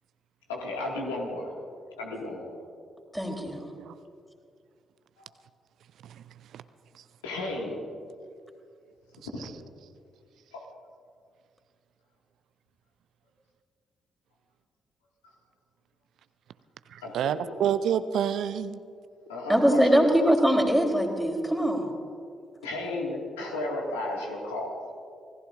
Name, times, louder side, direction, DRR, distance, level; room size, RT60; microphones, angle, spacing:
voice 1, 0.5-1.5 2.0-2.6 5.2-5.3 7.2-7.8 9.3-9.5 10.5-10.6 17.0-17.4 19.3-20.0 22.6-24.9, left 2 dB, 80° left, -1 dB, 2.0 m, -34 dB
voice 2, 3.1-3.7 19.5-21.9, equal, ahead, 2 dB, 3.3 m, -22 dB
voice 3, 16.9-18.8, right 9 dB, 60° right, 13 dB, 0.4 m, -28 dB
27.0 x 18.0 x 2.5 m, 2.3 s
figure-of-eight pair, 40°, 0 cm